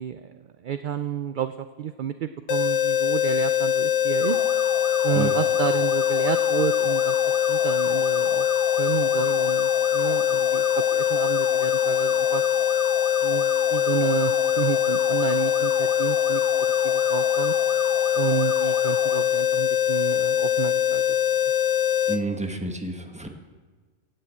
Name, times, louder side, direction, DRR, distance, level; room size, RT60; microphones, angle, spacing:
voice 1, 0.0-4.4 5.0-8.5 8.8-12.4 13.2-16.4 16.8-17.5 18.1-21.2, right 9 dB, 55° right, 10 dB, 0.5 m, -30 dB
sound 1, 2.5-22.2, left 10 dB, 80° left, 1.2 m, -23 dB
sound 2, 4.2-19.2, left 1 dB, 45° left, 2.0 m, -37 dB
voice 2, 22.1-23.3, right 1 dB, 5° right, 4 dB, 1.2 m, -30 dB
16.0 x 6.6 x 8.3 m, 1.4 s
omnidirectional pair, 1.3 m